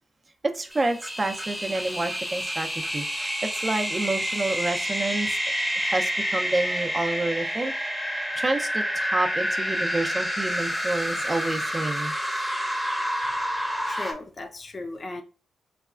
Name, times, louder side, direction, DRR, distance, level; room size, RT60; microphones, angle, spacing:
voice 1, 0.4-7.7 8.4-12.1, right 2 dB, 30° right, 0.5 m, -29 dB
Synth Sweep, 0.7-14.1, equal, ahead, 0.7 m, -28 dB
voice 2, 13.9-15.2, left 2 dB, 40° left, 0.4 m, -36 dB
4.0 x 2.3 x 2.4 m
cardioid pair, 65°, 0 cm